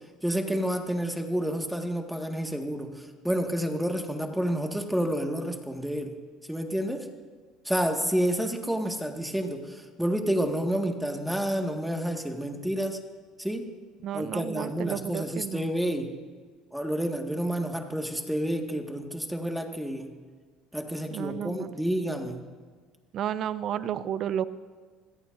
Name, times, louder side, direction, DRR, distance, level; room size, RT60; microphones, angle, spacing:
voice 1, 0.2-6.1 6.5-7.1 7.7-13.0 13.4-13.7 14.1-16.1 16.7-20.1 20.7-22.4, equal, 5° right, 3 dB, 1.8 m, -29 dB
voice 2, 14.0-15.7 21.1-21.7 23.1-24.4, right 10 dB, 55° right, 15 dB, 0.6 m, -32 dB
26.5 x 17.0 x 2.7 m, 1.5 s
supercardioid pair, 80°, 0 cm